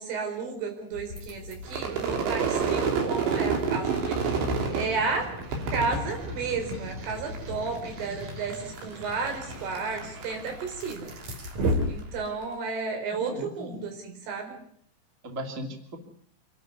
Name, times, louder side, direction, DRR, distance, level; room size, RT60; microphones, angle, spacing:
voice 1, 0.0-4.2 4.7-5.3 5.7-11.1 11.9-14.6, right 4 dB, 85° right, 4 dB, 6.9 m, -32 dB
sound 1, 0.9-12.5, equal, 40° right, 4.2 m, -37 dB
Crowd / Fireworks, 1.7-7.0 7.3-8.0 8.3-11.8, right 5 dB, 65° right, 5.2 m, -29 dB
voice 2, 13.1-13.9 15.2-16.0, equal, 20° right, 4 dB, 2.2 m, -37 dB
26.5 x 12.5 x 9.7 m, 0.69 s
omnidirectional pair, 5.5 m